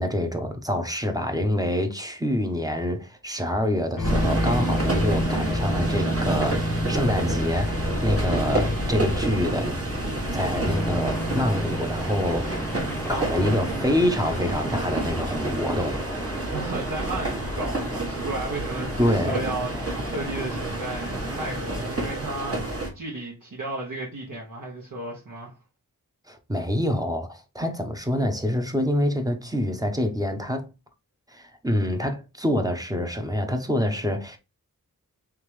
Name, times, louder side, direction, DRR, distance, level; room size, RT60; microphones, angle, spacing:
voice 1, 0.0-9.8 10.3-12.6 13.1-16.0 19.0-19.4 26.3-30.7 31.3-34.4, left 1 dB, 10° right, 0.8 m, -26 dB
sound 1, 4.0-15.3, left 1 dB, 60° left, 0.8 m, -29 dB
sound 2, 4.0-22.9, right 2 dB, 40° right, 1.3 m, -29 dB
sound 3, 10.7-21.5, left 1 dB, 10° left, 0.3 m, -39 dB
voice 2, 13.0-13.7 16.5-25.5, right 2 dB, 65° right, 1.2 m, -34 dB
3.6 x 3.5 x 3.2 m
wide cardioid pair, 75°, 35 cm